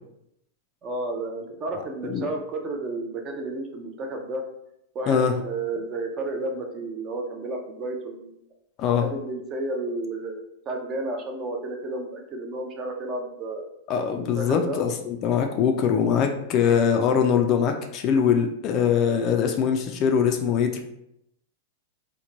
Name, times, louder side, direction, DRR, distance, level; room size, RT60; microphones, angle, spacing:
voice 1, 0.8-4.5 4.9-8.3 9.0-13.6 14.1-14.8, right 2 dB, 25° right, 3 dB, 0.5 m, -32 dB
voice 2, 13.9-20.8, left 7 dB, 35° left, 4 dB, 0.3 m, -22 dB
2.9 x 2.2 x 3.8 m, 0.79 s
supercardioid pair, 150°, 0 cm